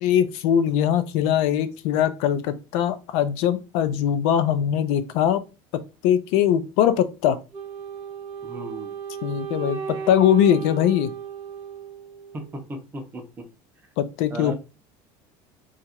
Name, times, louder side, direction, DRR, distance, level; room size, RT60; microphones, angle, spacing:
voice 1, 0.0-5.4 6.0-7.4 9.2-11.1 14.0-14.5, left 10 dB, 65° left, 0.4 m, -21 dB
Wind instrument woodwind instrument, 7.5-12.6, right 7 dB, 50° right, 0.9 m, -35 dB
voice 2, 8.4-8.9 12.3-13.4 14.3-14.5, right 1 dB, 15° right, 0.5 m, -35 dB
2.9 x 2.4 x 4.2 m
cardioid pair, 175°, 11 cm